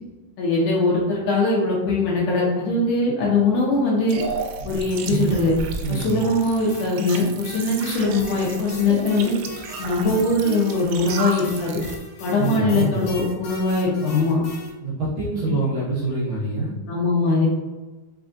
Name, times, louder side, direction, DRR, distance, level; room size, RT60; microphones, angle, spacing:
voice 1, 0.4-4.2 4.7-5.5 5.9-9.3 9.8-11.8 12.2-14.4 16.9-17.5, left 2 dB, 85° left, -5 dB, 1.8 m, -21 dB
sound 1, 4.1-12.0, right 5 dB, 85° right, 2.6 m, -32 dB
voice 2, 5.8-6.2 12.4-13.0 14.8-16.7, right 2 dB, 65° right, -9 dB, 1.8 m, -25 dB
sound 2, 6.7-14.7, left 2 dB, 65° left, 2.2 m, -37 dB
5.9 x 3.4 x 2.5 m, 1.2 s
omnidirectional pair, 4.7 m